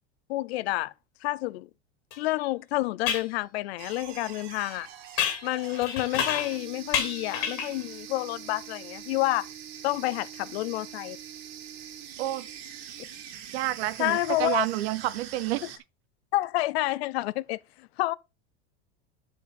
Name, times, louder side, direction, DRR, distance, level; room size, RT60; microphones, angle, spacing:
voice 1, 0.3-0.9 1.2-1.7 2.2-4.9 5.4-9.5 9.8-11.2 14.0-14.6 16.3-18.1, left 18 dB, 85° left, 0.6 m, -29 dB
sound 1, 2.1-2.2 3.1-3.3 5.2-6.6 6.9-7.8, left 8 dB, 50° left, 2.5 m, -29 dB
sound 2, 3.8-15.8, right 9 dB, 65° right, 2.3 m, -43 dB
voice 2, 13.5-15.6, right 15 dB, 80° right, 0.9 m, -29 dB
12.0 x 4.9 x 4.1 m
supercardioid pair, 165°, 31 cm